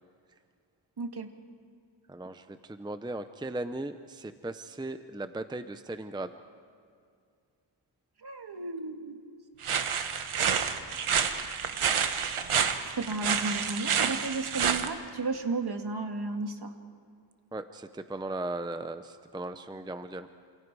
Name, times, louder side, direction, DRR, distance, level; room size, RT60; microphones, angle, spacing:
voice 1, 1.0-1.3 8.2-9.1 13.0-16.7, right 3 dB, 50° right, 5 dB, 2.0 m, -33 dB
voice 2, 2.1-6.3 17.5-20.3, right 2 dB, 10° right, 10 dB, 0.7 m, -37 dB
sound 1, 9.6-14.9, right 7 dB, 90° right, 1.4 m, -29 dB
29.0 x 27.5 x 4.8 m, 2.2 s
wide cardioid pair, 105°, 49 cm